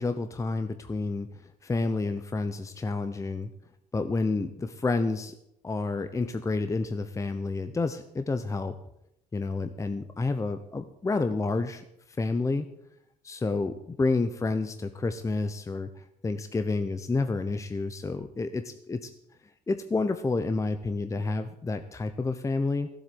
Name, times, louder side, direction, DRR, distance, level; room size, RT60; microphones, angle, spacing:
voice 1, 0.0-3.5 3.9-5.3 5.6-8.7 9.3-12.7 13.2-19.1 19.7-22.9, left 3 dB, 20° left, 9 dB, 0.9 m, -29 dB
15.0 x 8.0 x 8.0 m, 0.78 s
cardioid pair, 110°, 17 cm